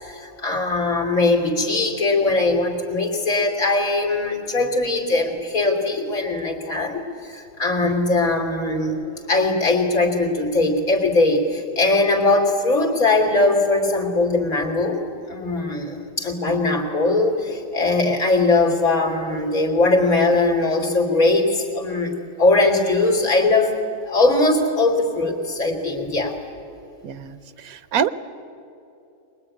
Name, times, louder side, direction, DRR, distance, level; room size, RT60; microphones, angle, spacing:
voice 1, 0.0-9.0 9.3-23.7 24.0-26.4, left 2 dB, 80° left, 1 dB, 3.5 m, -20 dB
voice 2, 27.0-28.1, right 8 dB, 80° right, 14 dB, 1.2 m, -26 dB
23.5 x 21.0 x 9.8 m, 2.7 s
omnidirectional pair, 1.5 m